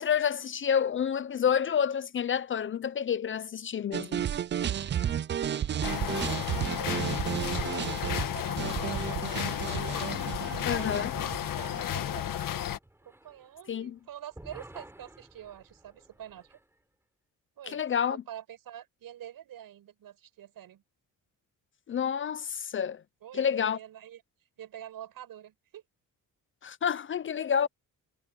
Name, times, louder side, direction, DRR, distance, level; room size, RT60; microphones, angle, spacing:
voice 1, 0.0-4.2 10.7-11.1 13.7-14.0 17.7-18.2 21.9-23.0 23.3-23.8 26.6-27.7, left 8 dB, 35° left, 0.4 m, -29 dB
sound 1, 3.9-12.0, right 9 dB, 35° right, 0.4 m, -33 dB
voice 2, 5.7-10.0 10.6-11.2 11.5-12.5 13.0-16.6 17.6-17.8 18.1-20.8 23.2-23.5 23.7-24.2 24.6-25.8, right 11 dB, 80° right, 7.8 m, -46 dB
sound 2, 5.8-12.8, left 11 dB, 70° left, 1.7 m, -33 dB
sound 3, 6.0-14.0 14.3-16.6, right 1 dB, 5° right, 5.4 m, -52 dB
cardioid pair, 140°, 34 cm